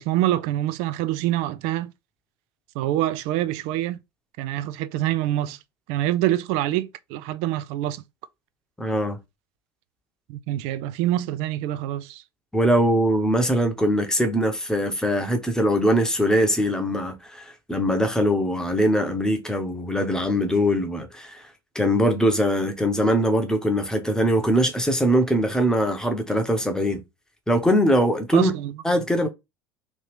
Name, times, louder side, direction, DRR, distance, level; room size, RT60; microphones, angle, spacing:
voice 1, 0.0-1.9 2.7-4.0 4.4-5.6 5.9-8.0 10.3-12.2 28.3-28.7, right 14 dB, 55° right, 0.4 m, -25 dB
voice 2, 8.8-9.2 12.5-21.4 21.7-27.0 27.5-28.5 28.8-29.3, equal, 5° left, 0.9 m, -22 dB
3.0 x 2.8 x 3.3 m
figure-of-eight pair, 75°, 13 cm